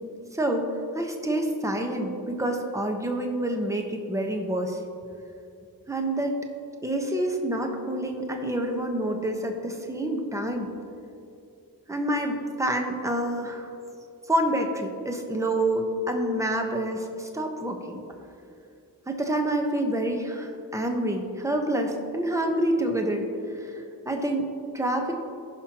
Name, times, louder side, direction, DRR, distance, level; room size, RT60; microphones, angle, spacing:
voice 1, 0.3-0.7 0.9-4.8 5.9-6.4 6.8-10.7 11.9-13.7 14.3-18.0 19.1-23.2 23.5-25.1, right 1 dB, 10° right, 3 dB, 1.2 m, -27 dB
15.0 x 5.7 x 3.0 m, 2.6 s
cardioid pair, 45°, 39 cm